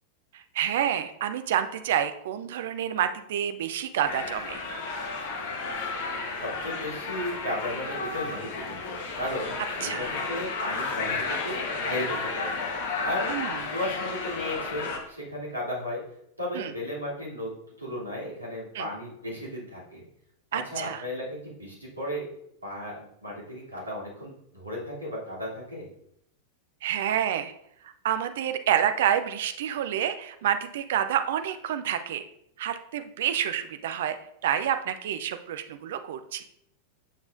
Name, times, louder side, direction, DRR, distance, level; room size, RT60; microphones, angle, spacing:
voice 1, 0.5-4.6 9.8-10.1 13.3-13.6 16.5-16.7 18.7-18.9 20.5-21.0 26.8-27.5 27.8-32.2 32.6-34.2 34.4-36.4, right 10 dB, 55° right, 9 dB, 0.5 m, -28 dB
sound 1, 4.0-15.0, left 4 dB, 50° left, 1.2 m, -32 dB
voice 2, 6.4-12.7 13.0-13.4 13.6-16.0 16.4-17.5 17.8-20.0 20.5-22.3 22.6-25.9, left 1 dB, 80° right, -6 dB, 3.0 m, -35 dB
8.9 x 6.8 x 2.6 m, 0.74 s
figure-of-eight pair, 90°, 0 cm